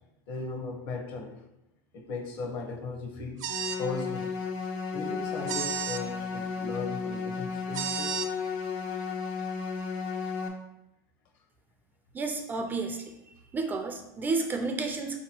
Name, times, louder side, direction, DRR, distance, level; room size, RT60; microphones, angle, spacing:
voice 1, 0.3-1.4 1.9-3.5 3.8-4.4 4.9-8.2, left 3 dB, 50° left, 4 dB, 0.9 m, -37 dB
sound 1, 3.4-3.8 5.5-6.0 7.7-8.3, right 8 dB, 85° right, 0.5 m, -32 dB
sound 2, 3.5-10.5, left 5 dB, 80° left, 0.9 m, -34 dB
voice 2, 12.1-13.0 13.5-15.2, right 3 dB, 20° right, 5 dB, 0.3 m, -31 dB
4.1 x 2.8 x 4.3 m, 0.90 s
supercardioid pair, 145°, 10 cm